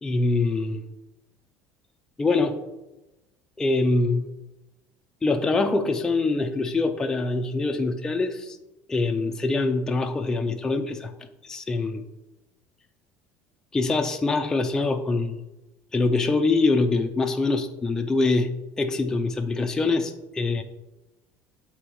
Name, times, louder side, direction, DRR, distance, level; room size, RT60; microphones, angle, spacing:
voice 1, 0.0-0.8 2.2-2.6 3.6-4.2 5.2-8.6 8.9-11.1 11.4-12.0 13.7-15.4 15.9-18.5 18.8-20.6, left 3 dB, 10° left, 4 dB, 0.4 m, -24 dB
7.7 x 3.4 x 4.7 m, 1.0 s
cardioid pair, 160°, 6 cm